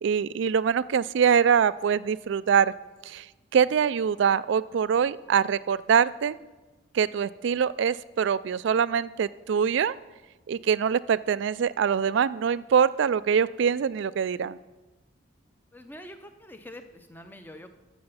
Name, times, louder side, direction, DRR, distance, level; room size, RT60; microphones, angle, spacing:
voice 1, 0.0-2.7 3.1-3.3 3.5-6.3 6.9-10.0 10.5-14.6, right 7 dB, 65° right, 17 dB, 0.3 m, -24 dB
voice 2, 15.7-17.7, left 1 dB, 10° left, 8 dB, 0.6 m, -45 dB
13.5 x 6.9 x 5.6 m, 1.2 s
head